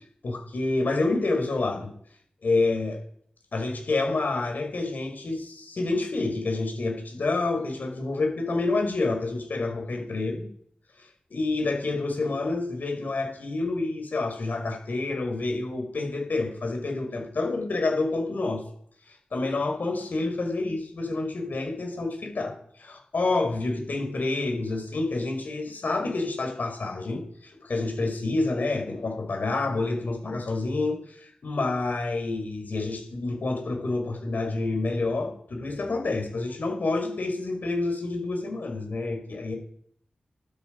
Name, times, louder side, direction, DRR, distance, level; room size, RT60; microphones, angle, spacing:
voice 1, 0.2-1.9 2.4-3.0 3.5-10.5 11.3-18.6 19.3-39.5, left 3 dB, 70° left, 3 dB, 5.1 m, -28 dB
17.0 x 12.5 x 5.2 m, 0.65 s
cardioid pair, 45°, 3 cm